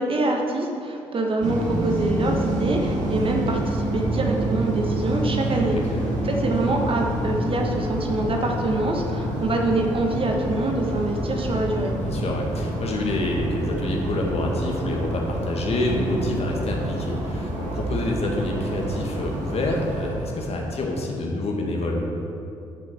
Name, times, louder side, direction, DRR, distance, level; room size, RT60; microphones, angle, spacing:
voice 1, 0.0-5.8 6.2-11.9, right 2 dB, 40° right, 1 dB, 1.5 m, -25 dB
sound 1, 1.4-20.9, right 1 dB, 55° right, 1.8 m, -28 dB
voice 2, 12.0-22.0, left 2 dB, 45° left, 0 dB, 2.0 m, -27 dB
13.0 x 7.4 x 4.4 m, 2.6 s
figure-of-eight pair, 45°, 15 cm